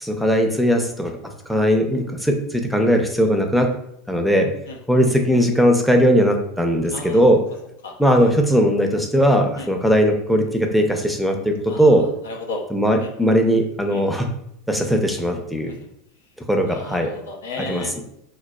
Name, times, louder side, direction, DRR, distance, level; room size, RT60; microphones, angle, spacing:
voice 1, 0.0-1.1 1.5-3.7 4.1-4.5 4.9-7.4 8.0-12.1 12.7-14.3 14.7-15.7 16.5-17.1 17.6-18.0, equal, ahead, 3 dB, 0.5 m, -19 dB
voice 2, 6.9-7.2 7.8-7.9 8.2-8.3 9.6-9.7 11.7-12.6 13.0-13.1 13.9-14.0 15.7-15.8 16.7-17.9, left 2 dB, 85° left, 1 dB, 0.6 m, -34 dB
3.9 x 2.3 x 2.2 m, 0.74 s
hypercardioid pair, 95°, 0 cm